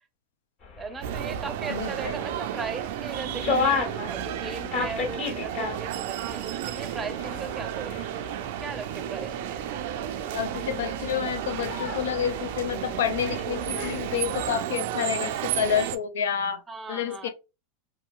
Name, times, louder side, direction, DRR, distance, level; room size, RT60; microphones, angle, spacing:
sound 1, 0.6-14.5, left 4 dB, 50° left, 1.4 m, -35 dB
voice 1, 0.8-8.0 8.6-9.7 16.7-17.3, right 4 dB, 20° right, 0.5 m, -38 dB
sound 2, 1.0-16.0, right 11 dB, 65° right, 0.3 m, -32 dB
voice 2, 1.7-2.1 10.3-16.6 16.9-17.3, left 9 dB, 80° left, 0.5 m, -29 dB
2.9 x 2.8 x 2.3 m
hypercardioid pair, 105°, 0 cm